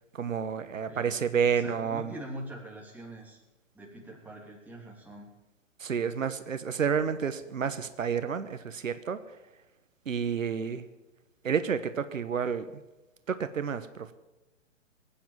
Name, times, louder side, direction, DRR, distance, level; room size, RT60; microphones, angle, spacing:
voice 1, 0.1-2.1 5.8-9.2 10.1-10.9 11.4-12.7 13.3-14.1, right 7 dB, 90° right, 11 dB, 1.2 m, -30 dB
voice 2, 1.4-3.4 3.7-5.3, right 1 dB, 5° right, -2 dB, 3.1 m, -43 dB
19.0 x 9.0 x 7.3 m, 1.1 s
hypercardioid pair, 135°, 38 cm